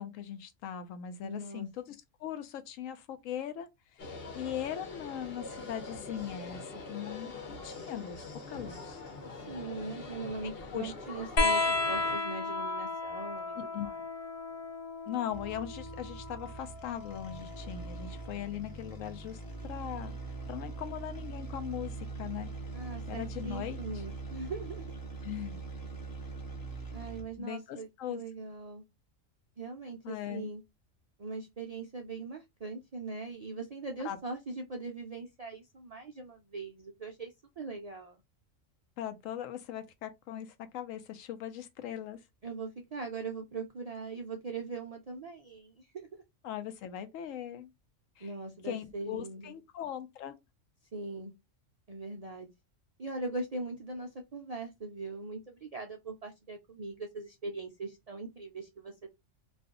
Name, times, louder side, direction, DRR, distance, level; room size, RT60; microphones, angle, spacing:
voice 1, 0.0-9.0 10.4-10.9 13.6-13.9 15.1-20.1 20.5-22.5 23.1-23.8 25.2-25.6 27.4-28.2 30.0-30.5 34.0-34.2 39.0-42.2 46.4-47.7 48.2-48.3 48.6-50.3, left 10 dB, 90° left, 1.0 m, -40 dB
voice 2, 1.2-1.7 9.4-14.1 22.7-24.9 26.9-28.8 29.6-30.6 31.2-38.2 42.4-46.2 48.2-49.5 50.9-51.3 51.9-52.5 53.0-59.1, right 3 dB, 75° right, 0.3 m, -41 dB
sound 1, 4.0-12.2, left 3 dB, 50° left, 1.0 m, -44 dB
sound 2, 11.4-18.4 19.8-20.6 21.9-22.0, left 3 dB, 75° left, 0.3 m, -34 dB
sound 3, 15.3-27.4, right 3 dB, 20° left, 0.6 m, -42 dB
2.5 x 2.4 x 3.6 m
omnidirectional pair, 1.3 m